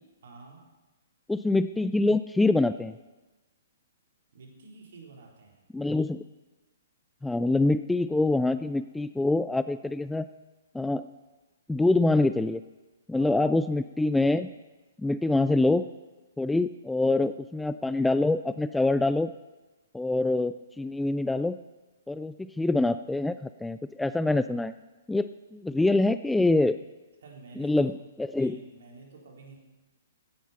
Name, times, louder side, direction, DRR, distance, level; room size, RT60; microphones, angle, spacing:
voice 1, 0.2-0.6 4.3-5.6 13.1-13.4 27.2-27.9 28.3-29.6, right 3 dB, 60° right, 0 dB, 3.7 m, -49 dB
voice 2, 1.3-2.9 5.7-6.2 7.2-10.3 10.7-11.1 11.7-12.6 13.1-14.5 15.0-15.8 16.4-19.3 19.9-21.6 22.1-24.7 25.1-26.8 27.6-28.6, left 2 dB, 5° left, 12 dB, 0.3 m, -25 dB
15.5 x 10.0 x 5.7 m, 1.1 s
figure-of-eight pair, 120°, 0 cm